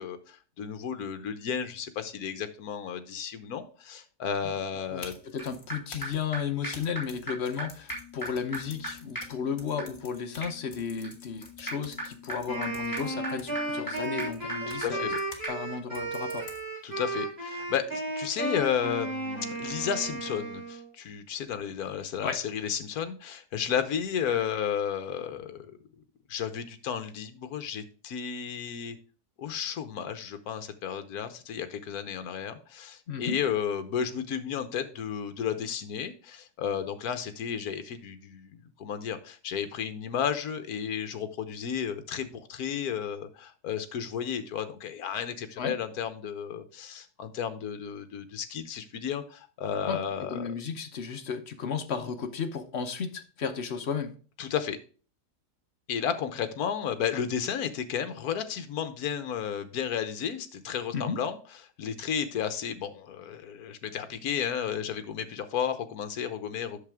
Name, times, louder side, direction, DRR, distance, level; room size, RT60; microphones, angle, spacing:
voice 1, 0.0-5.1 14.7-15.2 16.8-25.8 26.3-29.0 29.4-50.5 54.4-54.8 55.9-61.4 61.8-66.8, left 8 dB, 70° left, 9 dB, 1.3 m, -33 dB
sound 1, 4.8-15.5 15.9-16.9, left 3 dB, 35° left, 1.4 m, -50 dB
voice 2, 4.9-15.1 15.5-16.5 22.2-22.4 33.1-33.4 45.6-45.8 49.9-50.0 50.3-54.1 60.9-61.2, left 6 dB, 50° left, 7 dB, 0.9 m, -34 dB
sound 2, 5.4-5.5 5.7-5.8 6.0-6.1 6.3-6.4 6.6-6.7 7.0-7.1 7.3-7.4 7.6-7.7 7.9-15.2 15.4-15.5, right 1 dB, 10° left, 3.7 m, -39 dB
Wind instrument woodwind instrument, 12.5-20.9, right 2 dB, 35° right, 4.2 m, -34 dB
8.4 x 6.7 x 3.5 m, 0.39 s
omnidirectional pair, 1.7 m